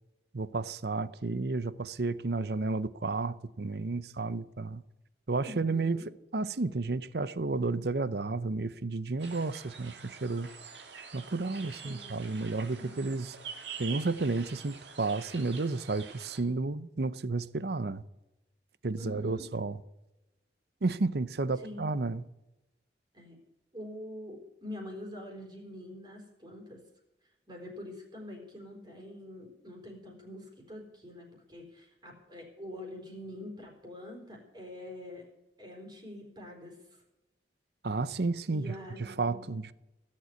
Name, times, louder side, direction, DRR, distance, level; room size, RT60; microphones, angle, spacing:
voice 1, 0.3-4.8 5.3-6.0 6.3-10.5 11.1-13.3 13.8-18.0 18.8-19.8 20.8-22.2 37.8-38.7 39.0-39.7, right 3 dB, 65° right, 0.7 m, -32 dB
voice 2, 5.4-6.1 11.8-12.3 12.8-13.2 19.0-19.5 21.6-21.9 23.1-23.4 23.7-26.8 27.5-35.2 35.6-36.8 38.5-39.4, left 1 dB, 25° right, 4.2 m, -45 dB
sound 1, 9.2-16.4, right 6 dB, 80° right, 2.6 m, -46 dB
17.5 x 7.6 x 9.5 m
head